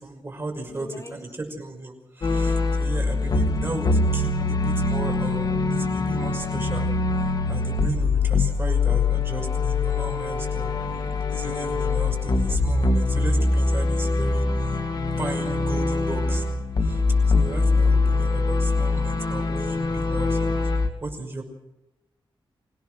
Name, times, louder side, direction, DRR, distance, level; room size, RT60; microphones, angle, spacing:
voice 1, 0.0-6.9 7.5-14.5 15.2-16.4 16.8-17.0 17.3-20.7 21.0-21.4, right 2 dB, 25° right, 2 dB, 5.9 m, -35 dB
voice 2, 0.6-1.2 17.7-17.9, left 2 dB, 35° left, 3 dB, 5.3 m, -42 dB
Autumn leaf, 2.2-20.9, left 3 dB, 55° left, 2.3 m, -23 dB
28.0 x 17.0 x 6.3 m, 0.96 s
wide cardioid pair, 145°, 9 cm